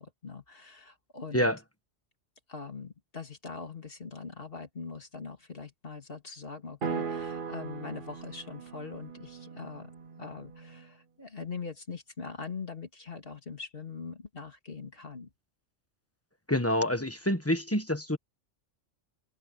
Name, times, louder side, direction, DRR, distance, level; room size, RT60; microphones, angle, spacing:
voice 1, 0.0-1.5 2.5-9.9 10.2-15.3, left 5 dB, 50° left, 2.7 m, -42 dB
sound 1, 6.8-10.9, right 5 dB, 50° right, 1.0 m, -39 dB
voice 2, 16.5-18.2, left 1 dB, 10° left, 1.3 m, -27 dB
omnidirectional pair, 1.3 m